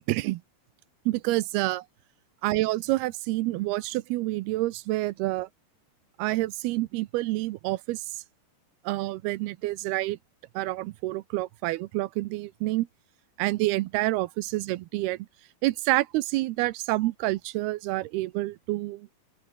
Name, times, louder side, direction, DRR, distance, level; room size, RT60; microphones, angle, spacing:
voice 1, 0.1-0.4 1.1-1.8 2.4-5.5 6.2-8.0 8.8-10.2 10.6-12.9 13.4-15.2 15.6-19.1, right 18 dB, 80° right, 2.5 m, -28 dB
open air
omnidirectional pair, 4.8 m